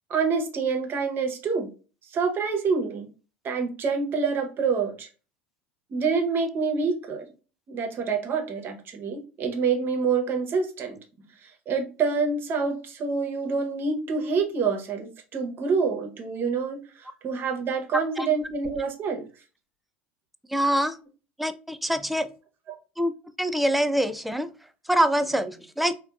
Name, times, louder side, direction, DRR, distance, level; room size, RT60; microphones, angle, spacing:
voice 1, 0.1-1.7 2.1-3.1 3.4-5.1 5.9-7.2 7.7-11.0 11.4-19.3, right 5 dB, 35° right, 3 dB, 0.9 m, -27 dB
voice 2, 20.5-21.0 21.4-22.3 23.0-23.1 23.4-24.5 24.9-25.9, equal, ahead, 11 dB, 0.3 m, -24 dB
4.4 x 2.3 x 2.3 m, 0.35 s
figure-of-eight pair, 75°, 6 cm